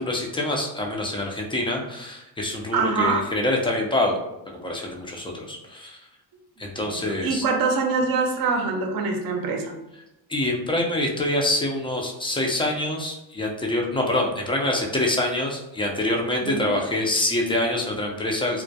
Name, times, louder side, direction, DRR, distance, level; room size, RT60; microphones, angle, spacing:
voice 1, 0.0-4.2 4.5-6.0 6.6-7.4 10.3-18.6, left 1 dB, 10° left, 0 dB, 0.3 m, -25 dB
voice 2, 2.7-3.3 6.8-9.7 16.4-16.8, right 4 dB, 45° right, 3 dB, 0.6 m, -24 dB
2.3 x 2.1 x 2.6 m, 0.91 s
supercardioid pair, 75°, 49 cm